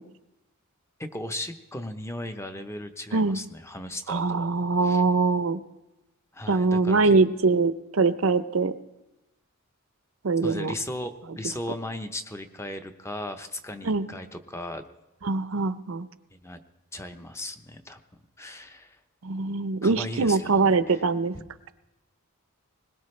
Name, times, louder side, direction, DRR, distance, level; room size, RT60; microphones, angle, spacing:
voice 1, 1.0-4.5 4.8-5.0 6.3-7.1 10.4-14.8 16.4-16.6 16.9-18.0 18.4-19.0 19.8-21.0 21.3-21.4, left 1 dB, 15° left, 7 dB, 0.8 m, -37 dB
voice 2, 4.1-5.6 6.5-8.7 10.2-10.7 13.8-14.1 15.2-16.1 19.2-21.3, right 3 dB, 70° right, 13 dB, 0.6 m, -23 dB
21.0 x 19.5 x 3.3 m, 1.0 s
head